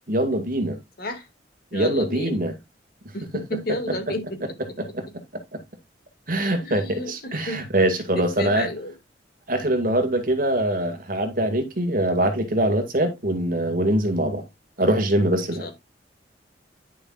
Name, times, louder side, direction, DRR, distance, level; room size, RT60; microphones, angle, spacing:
voice 1, 0.1-0.8 1.7-2.5 3.3-3.4 4.8-5.0 5.3-5.6 6.3-8.7 9.5-14.4 14.8-15.7, right 1 dB, 50° right, 2.0 m, -23 dB
voice 2, 1.7-2.4 3.1-4.4 6.6-7.6 8.1-8.9 15.3-15.7, left 1 dB, 55° left, 2.1 m, -32 dB
10.0 x 6.9 x 2.4 m
head